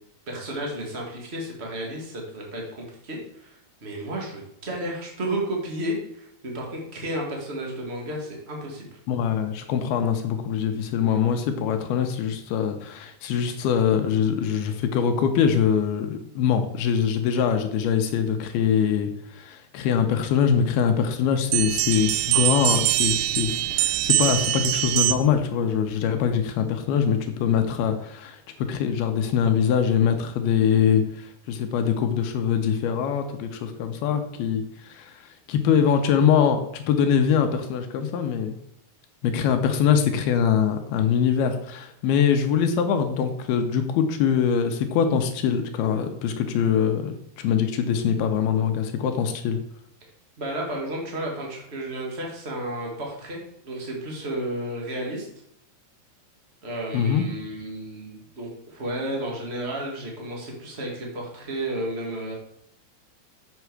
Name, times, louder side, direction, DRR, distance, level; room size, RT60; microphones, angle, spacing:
voice 1, 0.3-8.9 50.4-55.3 56.6-62.3, right 1 dB, 50° right, -1 dB, 0.7 m, -32 dB
voice 2, 9.1-38.6 39.2-49.6 56.9-57.3, left 7 dB, 80° left, 7 dB, 2.6 m, -23 dB
sound 1, 21.5-25.4, right 15 dB, 90° right, 2.7 m, -23 dB
8.2 x 6.7 x 4.7 m, 0.72 s
omnidirectional pair, 4.8 m